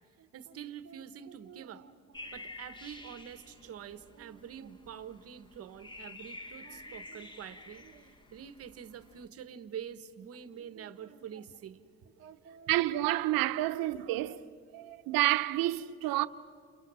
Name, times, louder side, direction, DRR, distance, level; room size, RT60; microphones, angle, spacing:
voice 1, 0.2-13.0, right 8 dB, 45° right, 1.1 m, -46 dB
sound 1, 2.1-9.3, left 2 dB, 15° left, 1.1 m, -50 dB
voice 2, 12.7-14.5 14.7-16.3, right 16 dB, 85° right, 0.9 m, -29 dB
30.0 x 29.5 x 6.2 m
cardioid pair, 180°, 34 cm